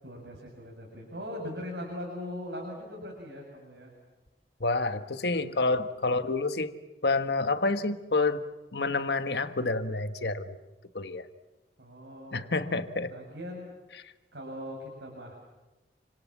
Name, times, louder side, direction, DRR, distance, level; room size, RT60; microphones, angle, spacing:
voice 1, 0.0-3.9 5.3-5.6 11.8-12.7 13.1-13.8 14.3-15.3, left 1 dB, 85° right, -1 dB, 7.3 m, -40 dB
voice 2, 4.6-6.8 7.0-8.4 8.7-10.6 10.9-11.3 12.3-13.1, left 3 dB, 70° left, 9 dB, 1.5 m, -28 dB
29.5 x 26.0 x 7.4 m, 1.1 s
head